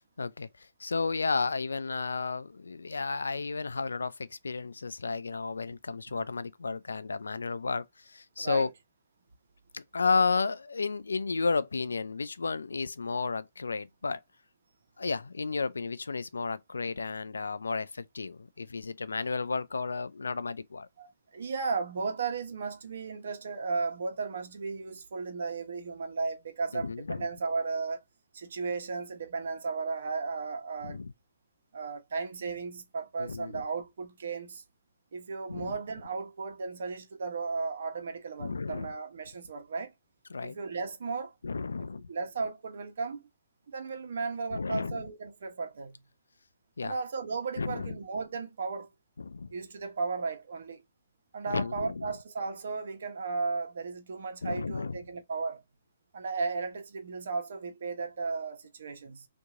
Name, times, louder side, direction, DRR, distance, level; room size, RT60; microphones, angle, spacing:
voice 1, 0.2-8.7 9.7-14.2 15.0-20.9 26.7-27.3 30.8-31.1 33.2-33.6 35.5-35.7 38.4-38.9 40.3-40.6 41.4-42.1 44.5-45.0 46.8-46.9 47.6-48.0 49.2-49.5 51.5-52.1 54.4-55.0, left 4 dB, 90° left, 0.4 m, -32 dB
voice 2, 8.4-8.7 21.0-28.0 28.3-31.0 31.7-34.6 35.1-39.9 40.4-41.3 42.1-43.2 43.7-46.0 46.8-48.9 49.5-50.8 51.3-55.6 56.1-59.3, right 4 dB, 70° right, 1.0 m, -35 dB
2.9 x 2.6 x 3.6 m
hypercardioid pair, 140°, 0 cm